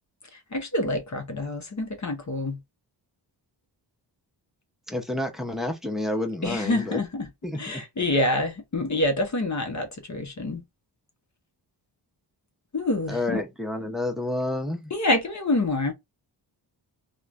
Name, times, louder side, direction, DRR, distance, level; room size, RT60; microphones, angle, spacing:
voice 1, 0.3-2.6 6.4-7.3 7.6-10.6 12.7-13.4 14.9-15.9, left 2 dB, 40° left, 0.8 m, -27 dB
voice 2, 4.9-7.0 7.4-7.8 13.1-14.9, left 1 dB, ahead, 0.7 m, -29 dB
3.1 x 2.2 x 2.4 m
cardioid pair, 65°, 47 cm